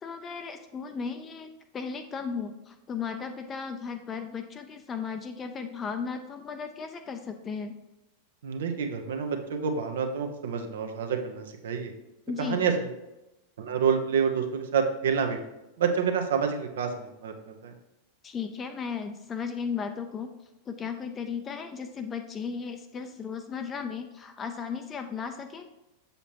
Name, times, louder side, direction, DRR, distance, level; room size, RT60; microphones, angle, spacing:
voice 1, 0.0-7.7 12.3-12.7 18.2-20.3 20.7-25.7, left 6 dB, 20° left, 6 dB, 0.6 m, -35 dB
voice 2, 8.4-11.9 12.4-12.9 13.6-15.4 15.8-17.7, right 6 dB, 60° right, 5 dB, 0.9 m, -28 dB
7.3 x 6.8 x 3.0 m, 0.95 s
figure-of-eight pair, 90°, 0 cm